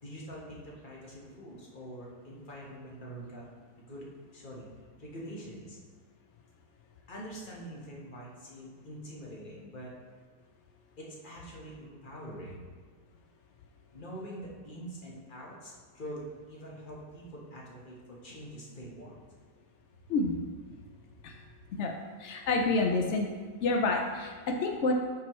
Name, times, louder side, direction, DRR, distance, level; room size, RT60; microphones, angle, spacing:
voice 1, 0.0-3.4 3.8-5.8 7.1-9.9 11.0-12.6 13.9-19.1 20.7-20.8 21.2-21.3, right 1 dB, 30° left, -3 dB, 1.3 m, -45 dB
voice 2, 22.2-23.3 23.6-24.9, left 3 dB, 75° left, 2 dB, 0.6 m, -28 dB
8.2 x 6.1 x 3.1 m, 1.5 s
omnidirectional pair, 1.9 m